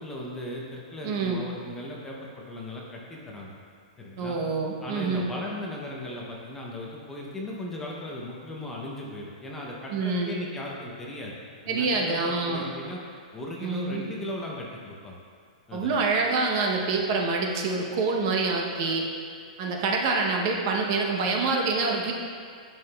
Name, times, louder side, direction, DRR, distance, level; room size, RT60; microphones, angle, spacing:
voice 1, 0.0-3.6 4.0-4.4 4.8-11.3 11.6-13.0 13.3-15.2 15.7-16.0, left 1 dB, 10° left, -3 dB, 0.6 m, -37 dB
voice 2, 1.0-1.4 4.2-5.3 9.9-10.3 11.7-12.7 13.6-14.1 15.7-19.1 19.6-22.1, right 3 dB, 40° right, 0 dB, 0.7 m, -26 dB
10.5 x 5.7 x 2.3 m, 2.2 s
supercardioid pair, 165°, 4 cm